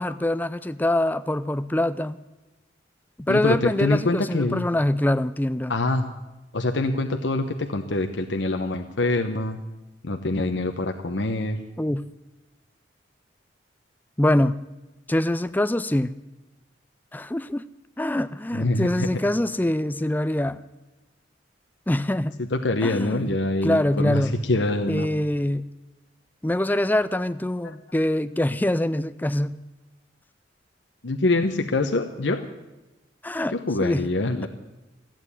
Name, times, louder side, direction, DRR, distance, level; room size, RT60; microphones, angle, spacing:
voice 1, 0.0-2.2 3.2-5.7 11.8-12.0 14.2-14.6 15.1-16.2 17.1-17.6 18.0-20.6 21.9-22.4 22.8-23.4 23.6-24.3 24.9-25.7 26.4-29.6 33.2-33.5 33.8-34.0, left 1 dB, 10° left, 14 dB, 0.4 m, -24 dB
voice 2, 3.3-4.7 5.7-6.0 6.5-9.6 10.0-11.6 18.5-19.1 22.4-25.1 27.6-27.7 31.0-32.5 33.5-34.5, left 2 dB, 80° left, 5 dB, 1.0 m, -25 dB
14.5 x 9.0 x 9.8 m, 1.1 s
head